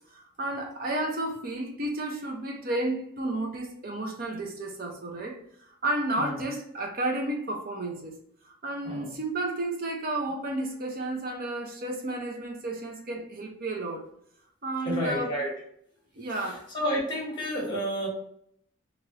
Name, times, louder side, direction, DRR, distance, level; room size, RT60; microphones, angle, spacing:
voice 1, 0.1-8.1 8.4-14.0 14.6-15.3 16.2-16.7, right 2 dB, 45° right, 0.7 m, -32 dB
voice 2, 14.8-15.5 16.3-18.1, equal, 20° left, 1.2 m, -31 dB
3.2 x 2.5 x 2.9 m
head